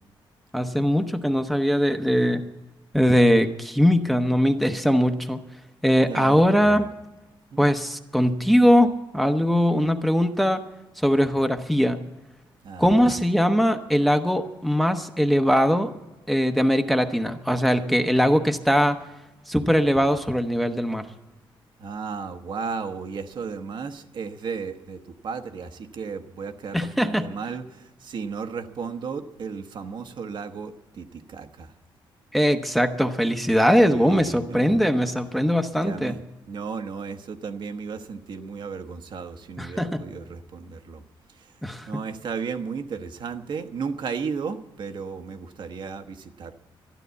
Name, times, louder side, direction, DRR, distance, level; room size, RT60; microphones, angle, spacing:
voice 1, 0.5-2.4 2.9-5.4 5.8-6.9 7.6-10.6 11.0-12.0 12.8-15.9 16.3-19.0 19.5-21.1 26.7-27.3 32.3-36.1 39.6-40.0 41.6-41.9, equal, ahead, 6 dB, 0.8 m, -21 dB
voice 2, 6.0-6.8 7.5-7.6 12.6-13.2 21.8-31.7 33.9-34.8 35.8-36.2 36.5-41.0 41.9-46.6, right 5 dB, 60° right, 7 dB, 1.0 m, -34 dB
12.5 x 11.5 x 8.1 m, 1.1 s
cardioid pair, 110°, 9 cm